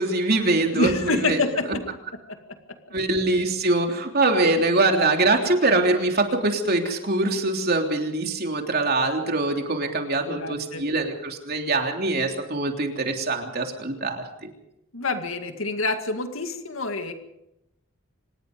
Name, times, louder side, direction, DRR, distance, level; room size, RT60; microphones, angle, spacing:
voice 1, 0.0-1.8 2.9-14.5, right 2 dB, 50° right, 3 dB, 3.3 m, -23 dB
voice 2, 0.7-1.7 10.3-10.8 14.9-17.1, left 3 dB, 85° left, 6 dB, 2.2 m, -27 dB
25.5 x 20.5 x 5.3 m, 0.85 s
head